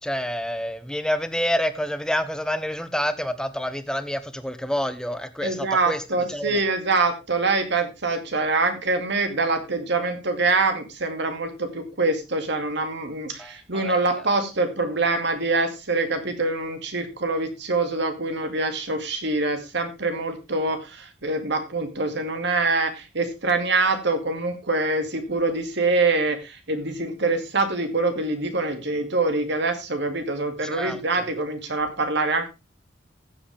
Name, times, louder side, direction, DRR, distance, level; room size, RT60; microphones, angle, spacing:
voice 1, 0.0-6.0 6.3-6.6 13.4-14.0 30.6-31.3, equal, 5° left, 0.9 m, -28 dB
voice 2, 5.4-32.5, right 3 dB, 65° right, 2.3 m, -25 dB
15.5 x 7.8 x 3.5 m
head